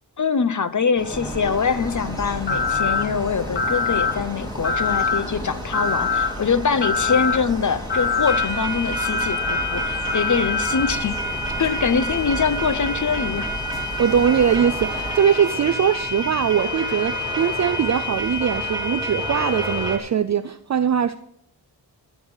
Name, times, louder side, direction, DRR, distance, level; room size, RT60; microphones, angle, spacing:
voice 1, 0.2-11.2 11.6-13.5, left 6 dB, 45° left, 0.8 m, -23 dB
sound 1, 1.0-20.0, equal, 10° right, 1.7 m, -30 dB
sound 2, 1.1-15.2, equal, 10° left, 2.0 m, -34 dB
sound 3, 2.5-3.0 3.6-4.1 4.6-5.2 5.7-6.3 6.8-7.4 7.9-8.5 8.9-10.9, left 5 dB, 65° left, 2.4 m, -24 dB
voice 2, 14.0-21.2, right 8 dB, 40° right, 0.4 m, -21 dB
14.5 x 6.3 x 5.6 m
wide cardioid pair, 80°, 43 cm